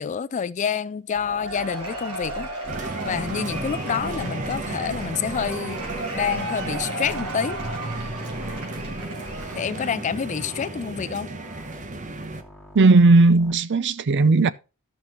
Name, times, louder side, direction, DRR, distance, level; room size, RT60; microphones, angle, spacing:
voice 1, 0.0-2.5 3.0-5.8 6.1-7.6 9.5-11.3, left 7 dB, 35° left, 0.3 m, -28 dB
sound 1, 1.1-13.5, equal, 5° left, 2.0 m, -43 dB
Cheering / Applause / Crowd, 1.2-10.1, right 2 dB, 85° right, 3.3 m, -34 dB
sound 2, 2.7-12.4, right 2 dB, 35° right, 0.9 m, -34 dB
voice 2, 12.8-14.5, right 3 dB, 55° right, 0.5 m, -16 dB
13.5 x 5.8 x 3.0 m
head